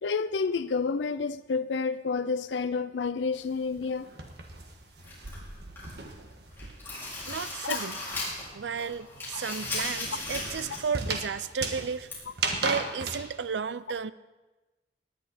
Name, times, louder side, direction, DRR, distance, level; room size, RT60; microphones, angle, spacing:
voice 1, 0.0-4.1 7.6-7.8, left 4 dB, 90° left, 0.5 m, -29 dB
sound 1, 3.3-7.1 7.4-13.2, right 3 dB, 65° right, 1.6 m, -36 dB
sound 2, 5.0-6.1 6.4-8.5 8.8-10.9 11.2-11.3 12.1-12.2, left 2 dB, 15° left, 5.1 m, -36 dB
voice 2, 7.3-8.0 8.5-12.1 12.6-14.1, right 6 dB, 85° right, 0.5 m, -33 dB
18.5 x 11.0 x 4.2 m
head